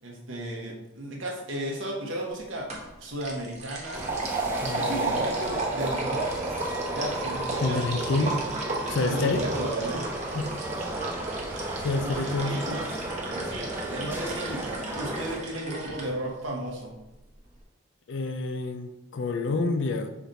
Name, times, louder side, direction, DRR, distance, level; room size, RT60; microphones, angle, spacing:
voice 1, 0.0-2.7 3.0-4.0 4.6-6.4 6.9-8.4 9.0-10.0 12.0-12.9 13.3-14.6 14.9-16.9, right 1 dB, 80° right, -1 dB, 1.1 m, -34 dB
sound 1, 2.7-2.9 3.2-16.0, right 2 dB, 35° right, 0.8 m, -33 dB
sound 2, 3.9-15.4, right 1 dB, 10° right, 0.4 m, -36 dB
voice 2, 4.6-5.3 7.6-8.4 8.9-9.4 10.3-10.5 11.8-12.6 18.1-20.1, left 3 dB, 65° left, 8 dB, 0.4 m, -28 dB
5.0 x 2.6 x 4.0 m, 0.96 s
head